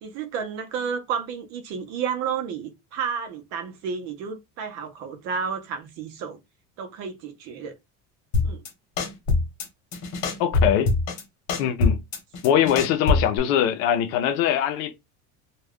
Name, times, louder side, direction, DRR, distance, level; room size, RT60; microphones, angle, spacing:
voice 1, 0.0-6.4 6.8-7.7 8.4-8.6, right 6 dB, 45° right, 0.7 m, -31 dB
sound 1, 8.3-8.7 9.0-9.7 9.9-11.2 11.5-13.4, left 3 dB, 45° left, 1.1 m, -23 dB
voice 2, 10.4-10.9 11.6-12.0 12.4-14.9, left 10 dB, 80° left, 0.7 m, -22 dB
2.3 x 2.2 x 3.4 m
cardioid pair, 170°, 36 cm